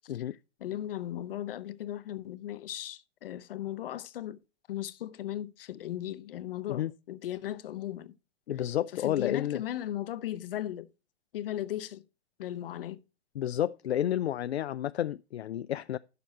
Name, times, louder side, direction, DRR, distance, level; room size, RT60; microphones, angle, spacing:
voice 1, 0.6-4.4 4.7-8.1 8.9-10.9 11.3-12.0 12.4-13.0, left 12 dB, 60° left, 0.9 m, -37 dB
voice 2, 8.5-9.6 13.4-16.0, left 11 dB, 75° left, 0.5 m, -31 dB
11.5 x 6.8 x 4.3 m
figure-of-eight pair, 110°, 32 cm